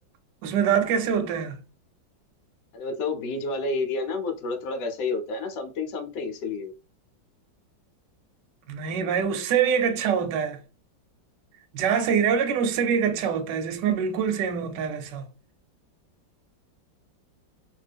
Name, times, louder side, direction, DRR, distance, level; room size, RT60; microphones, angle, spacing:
voice 1, 0.4-1.6 8.7-10.6 11.7-15.3, right 7 dB, 75° right, 1.2 m, -24 dB
voice 2, 2.7-6.7, left 3 dB, 70° left, 1.2 m, -30 dB
2.9 x 2.6 x 3.3 m
omnidirectional pair, 2.0 m